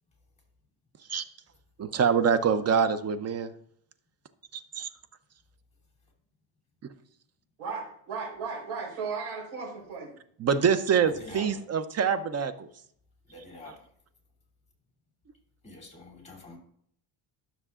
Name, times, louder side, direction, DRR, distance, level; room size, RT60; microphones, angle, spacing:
voice 1, 1.8-3.5 4.5-4.9 10.4-12.7 13.7-13.8, right 6 dB, 30° right, 12 dB, 0.5 m, -25 dB
voice 2, 7.6-10.1, right 5 dB, 75° right, -3 dB, 4.0 m, -35 dB
voice 3, 11.0-11.5 13.3-13.9 15.6-16.6, left 3 dB, 15° left, 0 dB, 2.8 m, -46 dB
12.5 x 6.8 x 2.4 m, 0.65 s
cardioid pair, 115°, 49 cm